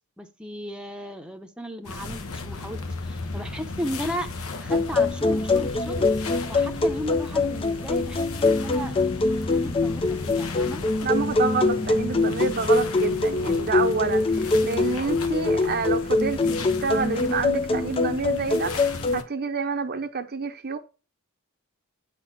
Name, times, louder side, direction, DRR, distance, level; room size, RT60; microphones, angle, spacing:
voice 1, 0.2-4.3 4.6-6.1 6.5-9.0 9.5-10.8, equal, 5° right, 0.8 m, -35 dB
sound 1, 1.8-19.2, left 3 dB, 65° left, 1.1 m, -35 dB
sound 2, 4.7-19.2, left 3 dB, 25° left, 0.5 m, -24 dB
voice 2, 11.0-20.8, right 4 dB, 45° right, 0.8 m, -28 dB
8.8 x 4.3 x 5.9 m
head